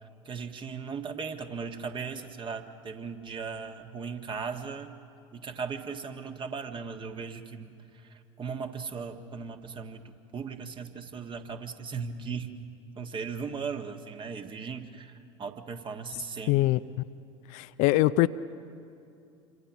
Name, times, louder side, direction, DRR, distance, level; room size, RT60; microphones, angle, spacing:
voice 1, 0.2-4.9 5.3-12.5 12.9-16.6, right 5 dB, 30° right, 6 dB, 1.6 m, -37 dB
voice 2, 16.5-16.8 17.5-18.3, left 17 dB, 55° left, 14 dB, 0.5 m, -23 dB
27.0 x 25.5 x 6.0 m, 2.6 s
figure-of-eight pair, 65°, 16 cm